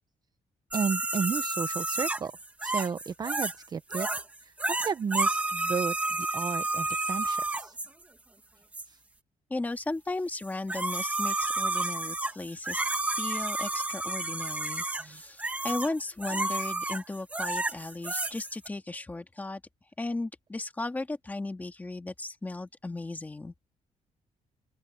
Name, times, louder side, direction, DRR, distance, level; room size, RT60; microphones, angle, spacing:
sound 1, 0.7-3.6 3.9-4.2 4.6-7.9 8.7-8.8 10.4-18.7, right 2 dB, 10° right, 1.6 m, -31 dB
voice 1, 0.7-2.3 2.6-4.1 4.4-7.7 16.3-16.4, right 6 dB, 30° right, 0.6 m, -33 dB
voice 2, 9.5-19.6 20.0-23.5, left 2 dB, 15° left, 2.3 m, -36 dB
open air
wide cardioid pair, 175°, 13 cm